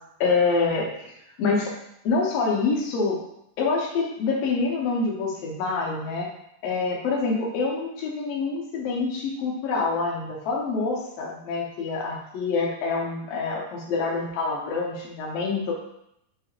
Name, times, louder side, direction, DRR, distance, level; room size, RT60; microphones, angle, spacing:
voice 1, 0.2-1.0 1.4-1.7 2.0-3.2 3.6-6.3 6.6-15.7, left 4 dB, 80° left, -2 dB, 1.4 m, -26 dB
5.5 x 3.1 x 2.4 m, 0.78 s
omnidirectional pair, 4.0 m